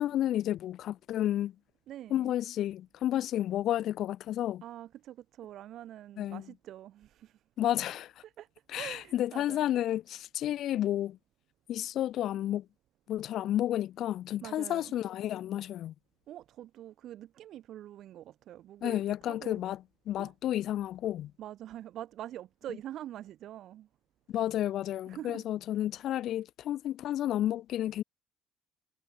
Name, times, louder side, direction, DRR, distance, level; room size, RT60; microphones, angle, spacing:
voice 1, 0.0-1.5 2.1-4.6 6.2-6.4 7.6-8.1 8.7-11.2 11.7-12.7 13.1-15.9 18.8-19.8 20.1-21.3 24.3-28.0, left 12 dB, 60° left, 0.4 m, -31 dB
voice 2, 1.9-2.3 4.6-7.4 8.2-8.5 8.7-9.7 14.4-14.9 16.3-19.6 20.2-20.3 21.4-23.9 25.1-25.4, right 12 dB, 60° right, 0.9 m, -45 dB
hypercardioid pair, 60°, 0 cm